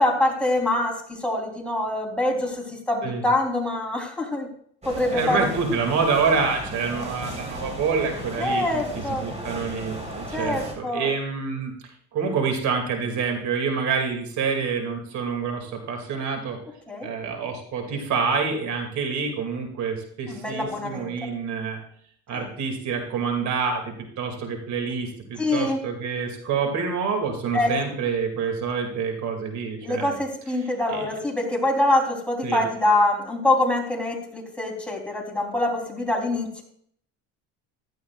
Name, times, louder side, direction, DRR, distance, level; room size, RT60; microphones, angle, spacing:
voice 1, 0.0-4.5 4.9-5.5 8.4-9.3 10.3-11.1 16.9-17.1 20.3-21.1 22.3-22.5 25.4-25.8 27.5-27.7 29.8-36.6, left 1 dB, 5° left, 0 dB, 3.5 m, -24 dB
sound 1, 4.8-10.7, right 1 dB, 20° right, 4.1 m, -36 dB
voice 2, 5.1-11.7 12.1-16.6 17.0-21.8 22.3-30.2 30.9-31.2 32.4-32.6, right 5 dB, 55° right, 4 dB, 2.5 m, -27 dB
15.5 x 12.5 x 2.4 m, 0.64 s
supercardioid pair, 100°, 33 cm